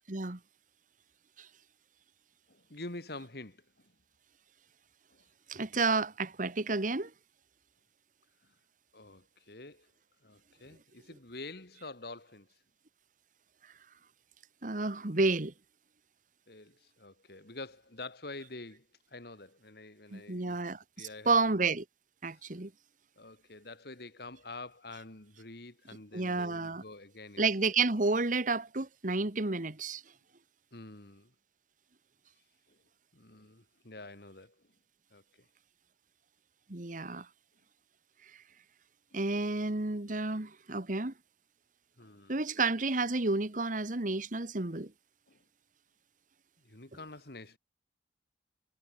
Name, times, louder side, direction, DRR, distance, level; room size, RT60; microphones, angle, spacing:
voice 1, 0.1-0.4 1.4-1.5 5.5-7.1 14.6-15.5 20.1-21.8 22.2-22.7 26.1-26.8 27.4-30.0 36.7-37.3 39.1-41.1 42.3-44.9, right 3 dB, 45° right, 1.5 m, -31 dB
voice 2, 2.5-3.9 5.1-5.2 8.9-9.9 10.2-12.5 16.5-20.6 21.0-21.6 23.2-27.5 30.7-31.3 32.7-32.8 33.1-34.5 35.1-35.2 39.1-39.2 42.0-42.3 45.3-45.4 46.6-47.6, left 2 dB, 60° left, 2.8 m, -47 dB
head